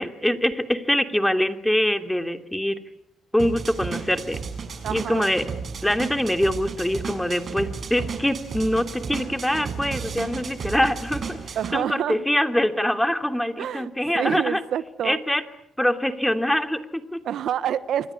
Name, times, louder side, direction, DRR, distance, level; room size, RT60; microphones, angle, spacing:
voice 1, 0.0-2.8 3.3-4.4 4.9-5.5 5.8-14.6 15.0-15.4 15.8-17.2, left 1 dB, 5° left, 3.0 m, -24 dB
sound 1, 3.4-11.7, right 5 dB, 50° right, 6.2 m, -33 dB
voice 2, 4.8-5.3 11.5-12.2 13.6-15.2 17.2-18.1, right 9 dB, 70° right, 1.2 m, -27 dB
28.5 x 24.5 x 8.6 m
cardioid pair, 90°, 0 cm